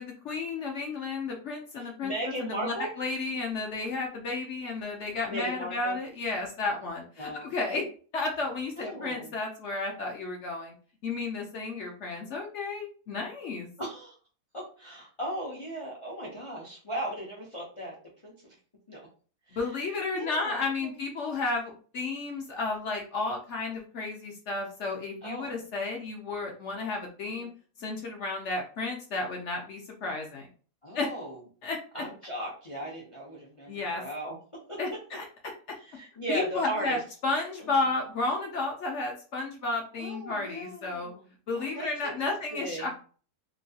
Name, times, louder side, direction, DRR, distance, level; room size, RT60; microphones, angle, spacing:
voice 1, 0.0-2.1 2.4-7.9 8.1-10.7 11.0-13.7 19.5-27.5 27.8-30.5 30.9-31.1 31.6-32.0 33.7-34.0 34.8-35.2 36.3-41.1 41.5-43.0, left 3 dB, 60° left, 1 dB, 0.8 m, -32 dB
voice 2, 1.8-2.9 5.2-6.0 7.2-7.5 8.8-9.3 13.8-14.1 14.5-17.9 18.2-18.5 18.9-19.0 19.5-19.6 19.9-21.0 21.3-21.4 25.2-25.6 27.3-27.5 30.8-31.4 31.9-34.3 34.7-34.8 35.8-37.0 37.6-37.7 40.0-41.3 41.5-42.9, right 1 dB, 40° left, -3 dB, 0.4 m, -37 dB
3.0 x 2.7 x 2.7 m, 0.40 s
omnidirectional pair, 1.7 m